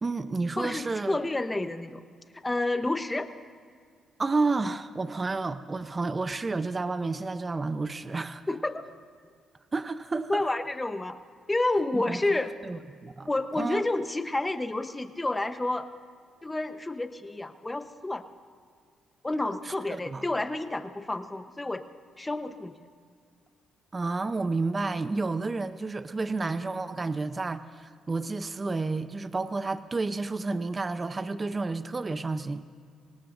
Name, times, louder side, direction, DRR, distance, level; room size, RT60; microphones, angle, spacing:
voice 1, 0.0-1.2 4.2-8.4 9.7-10.4 11.9-12.2 12.6-13.3 13.5-13.8 19.6-20.2 23.9-32.6, right 3 dB, 25° right, 11 dB, 0.7 m, -30 dB
voice 2, 0.6-2.0 2.4-3.3 8.5-8.7 10.3-11.2 11.5-12.5 13.3-15.9 16.4-18.2 19.2-21.8 22.2-22.7, left 2 dB, 15° left, 9 dB, 0.9 m, -29 dB
25.0 x 18.5 x 2.6 m, 2.1 s
cardioid pair, 90°, 0 cm